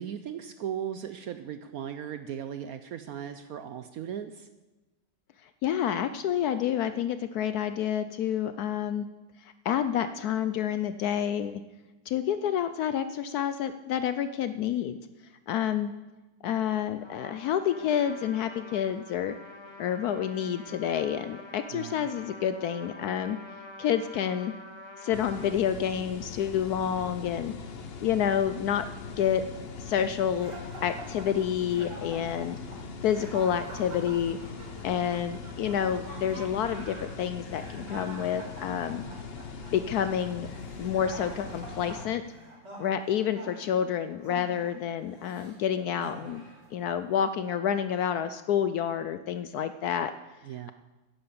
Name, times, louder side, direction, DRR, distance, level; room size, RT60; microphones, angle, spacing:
voice 1, 0.0-4.5 21.7-22.1 50.4-50.7, right 9 dB, 70° right, 9 dB, 0.9 m, -37 dB
voice 2, 5.4-9.1 9.4-11.6 12.1-15.0 15.5-15.9 16.4-19.4 19.8-23.4 23.8-24.5 25.0-27.5 28.0-28.9 29.2-29.5 29.8-32.6 33.0-34.4 34.8-39.0 39.7-40.5 40.8-42.2 42.8-46.4 46.7-50.1, left 9 dB, 70° left, 11 dB, 0.9 m, -29 dB
Trumpet, 17.0-25.6, left 2 dB, 20° left, 0.9 m, -47 dB
sound 1, 25.1-42.1, left 5 dB, 45° left, 0.9 m, -41 dB
sound 2, 30.4-45.6 46.0-46.7, right 1 dB, 40° right, 4.0 m, -46 dB
10.5 x 9.9 x 7.1 m, 1.1 s
omnidirectional pair, 2.0 m